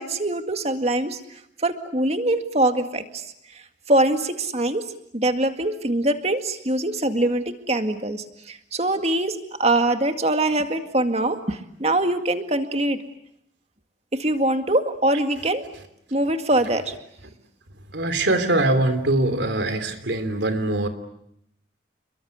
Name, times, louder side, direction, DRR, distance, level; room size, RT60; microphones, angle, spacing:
voice 1, 0.0-3.2 3.5-4.8 5.1-13.0 14.1-15.7 16.1-17.0, right 1 dB, 35° right, 7 dB, 2.0 m, -23 dB
voice 2, 17.9-20.9, right 2 dB, 75° right, 9 dB, 3.2 m, -22 dB
29.0 x 22.5 x 8.2 m, 0.74 s
head